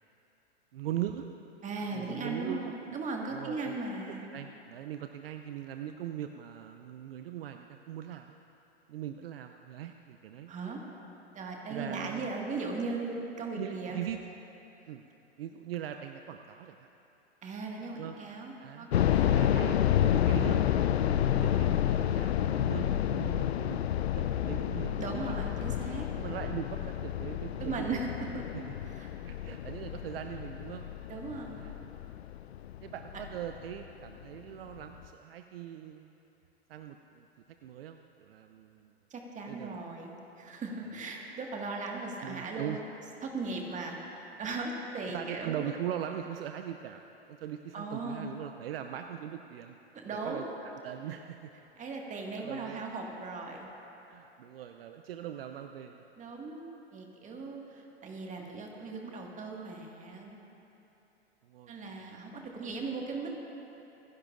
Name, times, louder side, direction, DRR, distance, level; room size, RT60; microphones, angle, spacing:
voice 1, 0.7-1.3 1.9-3.0 3.3-3.8 4.1-8.4 8.9-10.5 11.7-12.3 13.6-14.2 14.9-15.0 15.4-16.9 17.9-18.1 18.6-18.9 19.3-25.4 26.2-28.0 28.5-30.9 31.5-31.7 32.8-36.1 36.7-37.3 37.6-38.9 39.5-39.8 42.2-42.8 45.1-47.0 47.3-49.8 50.1-51.5 52.4-52.9 54.1-56.0 61.4-62.1, right 11 dB, 65° right, 6 dB, 0.6 m, -41 dB
voice 2, 1.6-4.3 10.5-10.8 11.3-14.0 17.4-19.5 25.0-26.1 27.6-28.1 28.3-28.4 29.0-29.1 31.1-31.7 39.1-42.8 43.2-45.7 47.7-48.4 49.9-50.5 51.8-53.7 56.2-56.7 56.9-60.4 61.7-63.5, right 3 dB, 20° right, 0 dB, 1.8 m, -38 dB
sound 1, 18.9-33.8 34.1-34.2 34.8-35.1, left 11 dB, 75° left, 0.5 m, -30 dB
27.5 x 11.0 x 2.5 m, 3.0 s
hypercardioid pair, 100°, 32 cm